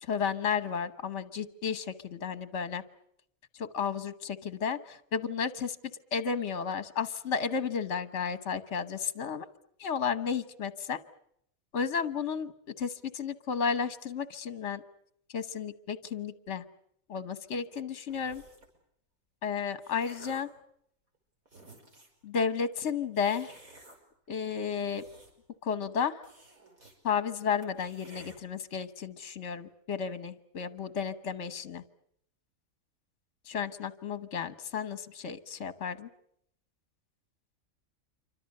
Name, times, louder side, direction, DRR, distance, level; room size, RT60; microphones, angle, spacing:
voice 1, 0.0-2.8 3.5-5.8 6.1-9.4 9.8-11.0 11.7-14.8 15.3-16.6 17.1-18.4 19.4-20.5 22.2-23.5 24.3-25.0 25.6-26.2 27.0-31.8 33.5-36.1, left 6 dB, 60° left, 12 dB, 1.5 m, -33 dB
sound 1, 18.1-18.8 19.4-20.6 21.1-21.2 21.5-22.2 23.1-24.0 24.7-25.6 25.8-25.9 26.2-27.0 27.3-27.4 27.6-28.4, right 2 dB, 85° right, 5.9 m, -54 dB
27.5 x 25.0 x 6.7 m, 0.72 s
omnidirectional pair, 1.4 m